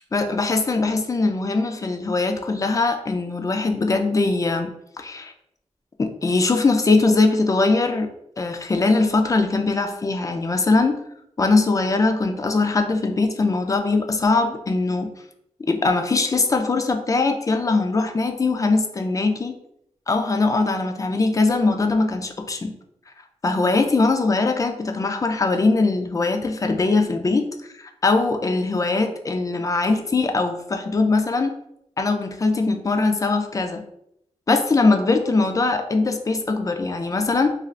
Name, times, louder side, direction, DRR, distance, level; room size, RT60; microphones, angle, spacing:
voice 1, 0.1-4.7 5.0-5.3 6.0-8.1 8.4-11.0 11.4-15.1 15.7-19.6 20.1-22.7 23.4-27.5 27.8-31.5 32.0-33.8 34.5-37.5, left 3 dB, 25° left, 5 dB, 0.4 m, -21 dB
2.5 x 2.3 x 3.2 m, 0.76 s
wide cardioid pair, 95°, 12 cm